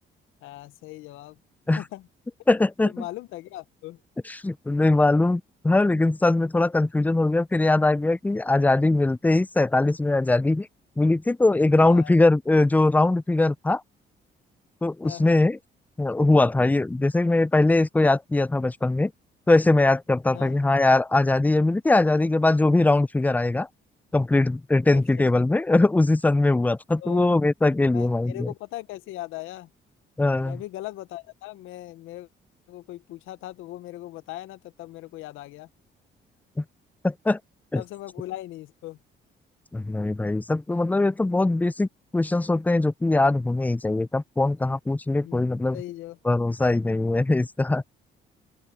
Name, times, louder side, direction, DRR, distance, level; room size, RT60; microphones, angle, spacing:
voice 1, 0.4-1.4 1.8-2.1 2.9-4.0 11.8-12.2 15.0-15.5 20.3-20.6 24.9-25.2 27.0-27.4 27.8-29.7 30.4-32.3 32.7-35.7 37.7-39.0 45.2-45.4 45.7-46.2, left 15 dB, 90° left, 0.6 m, -39 dB
voice 2, 2.5-2.9 4.3-10.7 11.0-13.8 14.8-15.6 16.0-19.1 19.5-23.7 24.1-28.5 30.2-30.6 36.6-36.7 37.0-37.4 37.7-37.8 39.7-45.8 46.2-47.8, left 2 dB, 10° left, 0.4 m, -21 dB
open air
cardioid pair, 90°, 20 cm